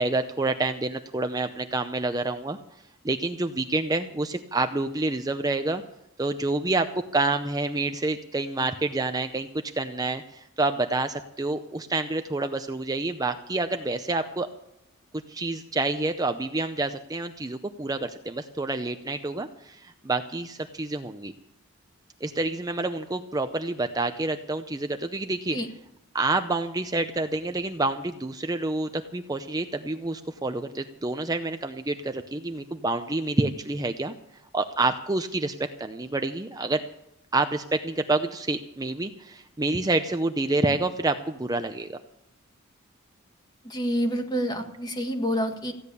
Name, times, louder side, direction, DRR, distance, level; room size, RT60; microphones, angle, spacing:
voice 1, 0.0-2.6 3.0-5.8 6.2-6.9 7.1-9.5 9.7-14.5 15.3-21.3 22.2-25.6 26.1-34.1 34.5-36.8 37.3-42.0, right 2 dB, 20° right, 7 dB, 0.6 m, -28 dB
voice 2, 43.6-45.7, equal, 20° left, 5 dB, 1.7 m, -28 dB
15.5 x 10.0 x 6.8 m, 0.82 s
head